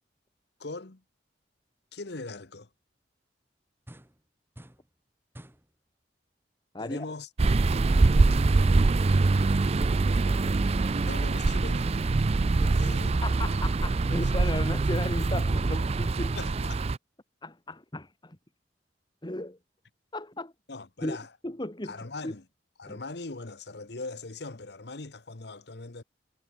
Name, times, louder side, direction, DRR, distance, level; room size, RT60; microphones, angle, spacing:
voice 1, 0.6-1.0 1.9-2.7 6.8-7.3 11.0-11.9 12.7-13.1 16.4-16.8 20.7-21.3 21.8-22.4 22.8-26.0, left 3 dB, 65° left, 1.3 m, -40 dB
sound 1, 3.9-4.2 4.5-4.9 5.3-5.7 9.5-11.1, equal, 15° right, 2.0 m, -50 dB
voice 2, 6.7-7.1 12.6-12.7 13.2-16.5 17.4-18.4 19.2-19.6 20.1-20.5 21.0-21.2 21.4-22.0 22.2-22.3 22.9-23.0, left 1 dB, 25° left, 2.1 m, -35 dB
sound 2, 7.4-17.0, right 3 dB, 35° right, 0.4 m, -24 dB
head